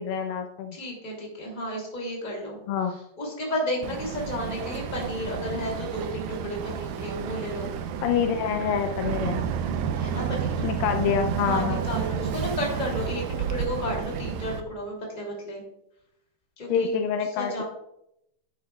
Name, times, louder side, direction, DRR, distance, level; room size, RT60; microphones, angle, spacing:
voice 1, 0.0-0.8 2.7-3.0 8.0-9.4 10.6-11.8 16.7-17.6, left 7 dB, 80° left, 7 dB, 2.2 m, -26 dB
voice 2, 0.7-2.6 3.2-7.7 9.9-10.6 11.4-15.6 16.6-16.9 17.4-17.6, equal, 15° left, -1 dB, 2.4 m, -32 dB
Boat Water vehicle, 3.8-14.6, right 7 dB, 80° right, 2.1 m, -31 dB
10.5 x 9.8 x 2.3 m, 0.79 s
omnidirectional pair, 4.1 m